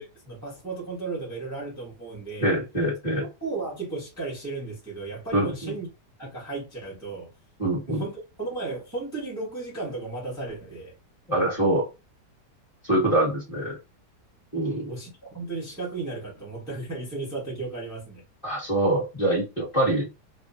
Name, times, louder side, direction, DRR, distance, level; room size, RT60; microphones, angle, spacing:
voice 1, 0.0-2.5 3.4-5.9 6.2-7.3 7.9-10.9 14.9-18.2, right 3 dB, 15° right, 0.8 m, -34 dB
voice 2, 2.4-3.2 5.3-5.7 7.6-8.0 11.3-11.9 12.8-13.8 14.5-14.9 18.4-20.1, right 1 dB, 25° left, 1.1 m, -24 dB
2.9 x 2.2 x 2.6 m
omnidirectional pair, 1.8 m